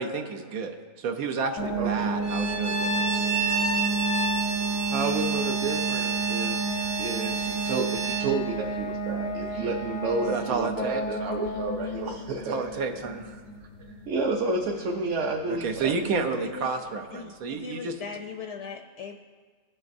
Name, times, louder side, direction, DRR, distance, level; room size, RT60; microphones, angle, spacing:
voice 1, 0.0-3.1 10.2-11.0 12.5-13.4 15.5-17.9, right 4 dB, 80° right, 5 dB, 1.3 m, -31 dB
sound 1, 1.6-16.2, right 3 dB, 90° left, 1.4 m, -32 dB
Bowed string instrument, 2.2-8.3, right 4 dB, 40° right, 0.6 m, -30 dB
voice 2, 4.9-6.6 7.0-12.6 14.1-16.4, right 3 dB, 60° right, -1 dB, 1.0 m, -30 dB
voice 3, 17.1-19.2, left 6 dB, 65° left, 4 dB, 0.8 m, -39 dB
17.5 x 6.2 x 2.6 m, 1.5 s
omnidirectional pair, 1.5 m